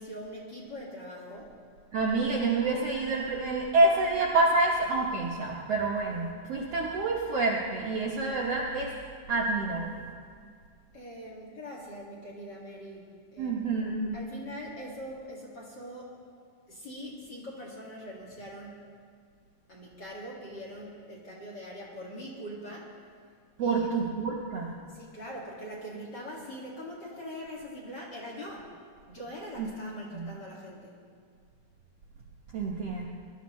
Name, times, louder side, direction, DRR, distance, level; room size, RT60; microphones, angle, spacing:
voice 1, 0.0-1.5 10.9-13.6 14.1-16.2 16.7-18.8 19.7-22.9 23.6-23.9 24.9-28.7 29.1-30.9, equal, 35° left, -5 dB, 2.2 m, -42 dB
voice 2, 1.9-8.9 9.3-10.1 13.4-14.2 23.6-24.7 29.6-29.7 30.1-30.3 32.5-33.0, right 3 dB, 60° right, -3 dB, 1.7 m, -27 dB
22.0 x 13.0 x 3.1 m, 2.2 s
omnidirectional pair, 4.0 m